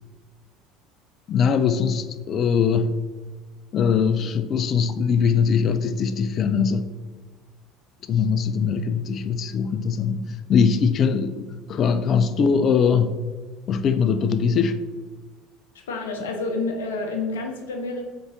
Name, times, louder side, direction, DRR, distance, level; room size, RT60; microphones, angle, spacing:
voice 1, 1.3-3.0 3.7-6.9 8.1-13.2 13.7-14.8, left 6 dB, 40° left, 0.3 m, -21 dB
voice 2, 15.9-18.1, left 3 dB, 70° left, 0.7 m, -28 dB
3.9 x 3.5 x 3.8 m
figure-of-eight pair, 65°, 0 cm